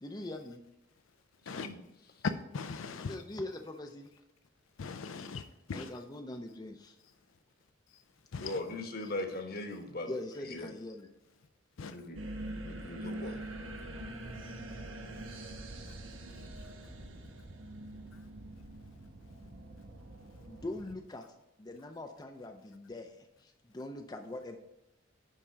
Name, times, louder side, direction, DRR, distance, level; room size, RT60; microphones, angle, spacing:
voice 1, 0.0-0.6 3.1-4.1 5.7-7.0 10.1-11.1 20.5-21.2 21.6-23.2 23.4-24.6, left 1 dB, 20° left, 0.5 m, -42 dB
voice 2, 2.2-3.2 4.8-6.0 8.3-8.6 11.8-12.0, left 4 dB, 90° left, 0.5 m, -38 dB
voice 3, 8.4-10.1 10.4-10.7 11.8-12.2 12.6-13.4, left 2 dB, 50° left, 1.2 m, -39 dB
sound 1, 12.1-20.9, right 1 dB, 90° right, 1.2 m, -44 dB
10.0 x 3.7 x 5.6 m
head